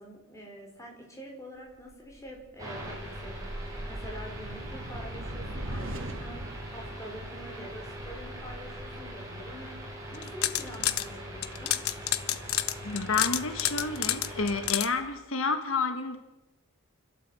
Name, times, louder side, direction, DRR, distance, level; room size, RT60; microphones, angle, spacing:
voice 1, 0.0-6.4 6.7-9.8 10.1-11.7, equal, 15° left, 0 dB, 5.0 m, -46 dB
sound 1, 1.9-10.3, right 1 dB, 60° right, 2.0 m, -41 dB
sound 2, 2.6-14.7, equal, 15° right, 5.6 m, -42 dB
sound 3, 10.1-11.1 11.4-14.9, left 13 dB, 85° left, 0.9 m, -29 dB
voice 2, 12.8-16.2, left 4 dB, 70° left, 7 dB, 1.6 m, -30 dB
29.0 x 13.0 x 7.9 m, 0.98 s
head